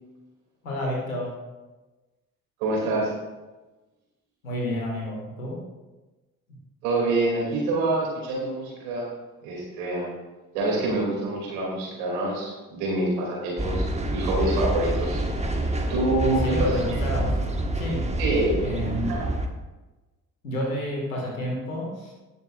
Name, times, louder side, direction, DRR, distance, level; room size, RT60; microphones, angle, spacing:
voice 1, 0.6-1.3 4.4-5.6 16.2-17.4 17.7-18.0 18.6-19.2 20.4-22.1, equal, 90° left, -2 dB, 2.0 m, -30 dB
voice 2, 2.6-3.1 6.8-9.1 9.4-10.1 10.5-13.9 14.1-15.2 15.9-16.8 18.2-18.6 19.1-19.3, right 2 dB, 80° right, -3 dB, 2.9 m, -26 dB
sound 1, 13.6-19.5, right 1 dB, 15° right, 1.5 m, -27 dB
17.5 x 6.8 x 2.5 m, 1.1 s
hypercardioid pair, 40°, 40 cm